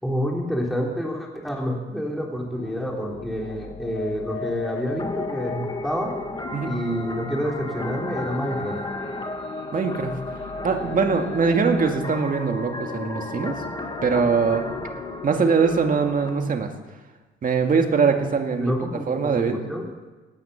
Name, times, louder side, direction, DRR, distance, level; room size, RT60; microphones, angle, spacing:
voice 1, 0.0-6.1 6.6-8.8 18.6-19.9, equal, ahead, -1 dB, 3.4 m, -28 dB
sound 1, 2.6-16.5, left 7 dB, 65° left, 2.0 m, -40 dB
sound 2, 5.0-16.3, left 2 dB, 20° left, 2.1 m, -34 dB
voice 2, 9.7-10.4 10.6-13.6 14.0-14.7 15.2-16.7 17.4-18.7 19.1-19.6, right 5 dB, 45° right, 4 dB, 2.1 m, -22 dB
17.5 x 9.8 x 7.1 m, 1.3 s
cardioid pair, 90°, 20 cm